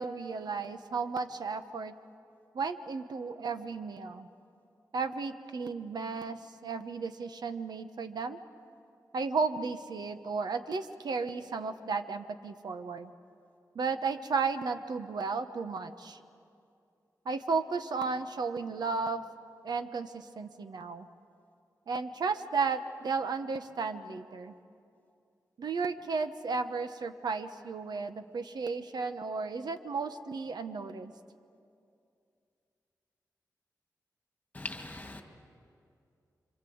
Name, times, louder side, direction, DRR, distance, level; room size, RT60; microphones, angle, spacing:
voice 1, 0.0-1.9 2.5-4.3 4.9-8.4 9.1-13.1 13.7-16.2 17.2-19.2 19.6-21.1 21.9-24.5 25.6-31.1, right 4 dB, 85° right, 9 dB, 1.1 m, -34 dB
voice 2, 34.5-35.2, left 2 dB, 20° left, 3 dB, 2.4 m, -40 dB
27.5 x 25.5 x 7.9 m, 2.5 s
wide cardioid pair, 105°, 7 cm